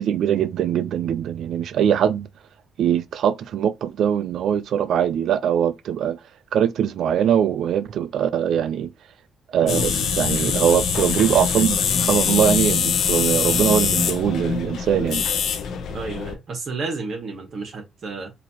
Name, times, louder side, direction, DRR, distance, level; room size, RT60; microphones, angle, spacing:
voice 1, 0.0-2.3 2.8-6.2 6.5-8.9 9.5-15.2, right 9 dB, 70° right, 0.4 m, -22 dB
sound 1, 9.7-16.3, left 7 dB, 75° left, 0.7 m, -23 dB
voice 2, 15.9-18.3, right 4 dB, 55° right, 1.6 m, -31 dB
4.1 x 2.8 x 2.9 m
cardioid pair, 90°, 0 cm